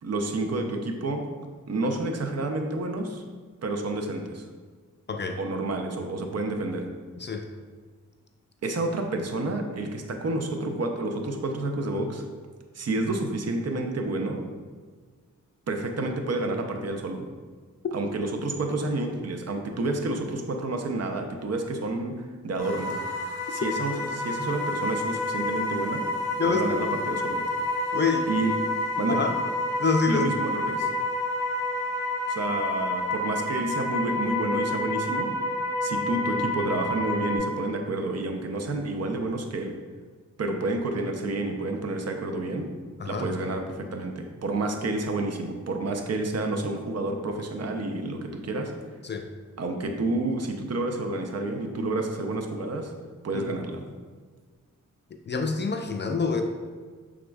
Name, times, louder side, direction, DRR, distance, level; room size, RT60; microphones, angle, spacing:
voice 1, 0.0-1.3 1.7-3.2 3.6-4.5 5.4-6.9 8.6-12.2 12.7-14.4 15.7-17.3 17.9-22.9 23.5-26.1 26.4-27.5 28.3-28.6 29.0-29.2 30.1-30.9 32.3-35.4 35.8-39.8 40.4-42.7 43.0-48.7 49.6-52.9 53.2-53.9, right 2 dB, 55° right, 4 dB, 0.6 m, -29 dB
voice 2, 5.1-5.4 7.2-7.4 26.4-26.9 27.1-27.2 27.9-28.3 29.1-29.3 29.8-30.2 43.0-43.3 49.0-49.2 53.3-53.6 55.3-56.4, left 4 dB, 35° left, 5 dB, 0.4 m, -26 dB
sound 1, 22.6-37.4, left 1 dB, 10° right, 1.3 m, -29 dB
6.0 x 3.6 x 2.3 m, 1.5 s
cardioid pair, 55°, 30 cm